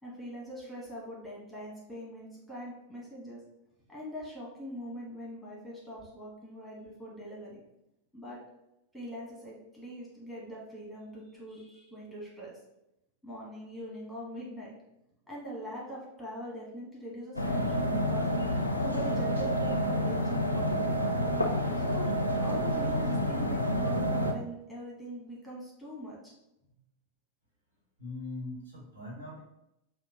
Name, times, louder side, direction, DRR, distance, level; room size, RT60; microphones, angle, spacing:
voice 1, 0.0-3.4 3.9-7.6 8.1-8.4 8.9-12.6 13.2-14.7 15.3-18.3 18.7-21.0 21.8-26.3, equal, ahead, -5 dB, 1.2 m, -42 dB
sound 1, 17.4-24.3, equal, 85° left, 0.4 m, -29 dB
voice 2, 28.0-29.4, left 2 dB, 75° right, -5 dB, 1.5 m, -41 dB
5.0 x 2.3 x 2.7 m, 0.85 s
figure-of-eight pair, 90°, 0 cm